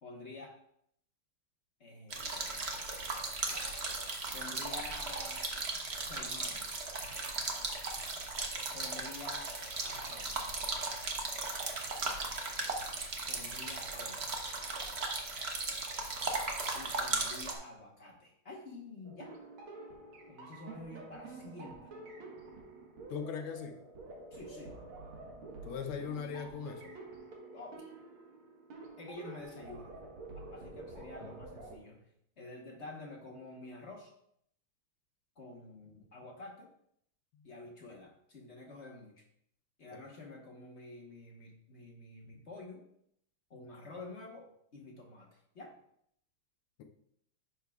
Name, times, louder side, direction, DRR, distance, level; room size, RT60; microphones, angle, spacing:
voice 1, 0.0-0.6 1.8-2.8 3.5-3.8 4.3-5.5 6.1-6.9 8.7-10.6 13.3-14.5 16.7-19.3 20.3-21.9 24.3-24.8 27.5-27.9 29.0-30.0 30.5-32.1 32.4-34.1 35.4-36.7 37.4-39.2 39.8-42.8 43.5-45.8, left 2 dB, 40° left, 0 dB, 1.1 m, -49 dB
sound 1, 2.1-17.5, right 3 dB, 45° right, 0.8 m, -37 dB
sound 2, 19.0-31.7, right 2 dB, 75° right, 2.2 m, -49 dB
voice 2, 23.1-23.8 25.6-26.9, left 7 dB, 80° left, 5 dB, 1.6 m, -39 dB
10.5 x 6.4 x 2.3 m, 0.71 s
omnidirectional pair, 2.3 m